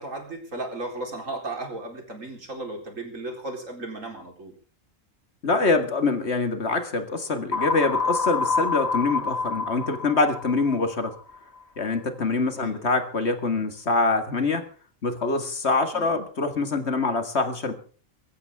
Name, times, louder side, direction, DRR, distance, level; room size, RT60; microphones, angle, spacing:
voice 1, 0.0-4.5 12.6-12.7 15.9-16.1, right 2 dB, 80° right, 3 dB, 4.5 m, -35 dB
voice 2, 5.4-11.1 11.8-14.7 15.0-17.7, left 3 dB, 55° left, 8 dB, 2.2 m, -25 dB
sound 1, 7.5-11.4, left 4 dB, 35° left, 1.0 m, -27 dB
21.5 x 15.5 x 3.6 m, 0.42 s
omnidirectional pair, 1.3 m